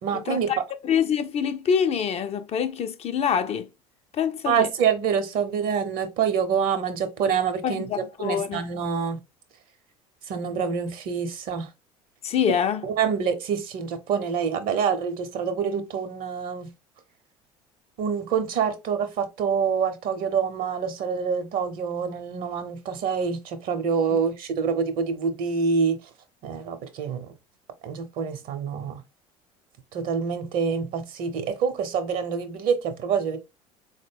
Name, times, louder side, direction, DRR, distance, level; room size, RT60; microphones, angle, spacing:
voice 1, 0.0-0.6 4.5-9.2 10.3-11.7 12.8-16.7 18.0-26.1 26.4-27.3 27.8-29.0 29.9-33.4, right 6 dB, 55° right, 0.8 m, -26 dB
voice 2, 0.9-3.7 4.1-4.7 7.6-8.6 12.2-12.8, left 7 dB, 35° left, 0.4 m, -25 dB
3.9 x 2.1 x 3.4 m
figure-of-eight pair, 65°, 18 cm